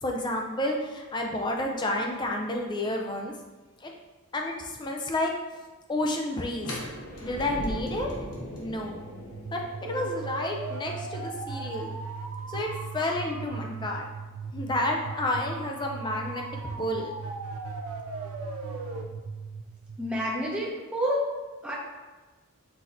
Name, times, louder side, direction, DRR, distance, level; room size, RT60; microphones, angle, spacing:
voice 1, 0.0-3.3 3.8-3.9 4.3-5.3 5.9-6.8 7.2-8.1 8.6-9.0 9.5-11.9 12.5-14.1 14.5-16.5 16.8-17.1, left 1 dB, 20° left, 1 dB, 0.3 m, -30 dB
sound 1, 6.6-12.4, equal, 80° left, 1.0 m, -39 dB
sound 2, 8.8-20.7, right 4 dB, 70° right, 0.4 m, -37 dB
voice 2, 20.0-21.3 21.6-21.7, equal, 5° right, -5 dB, 0.7 m, -28 dB
5.8 x 2.8 x 2.5 m, 1.3 s
head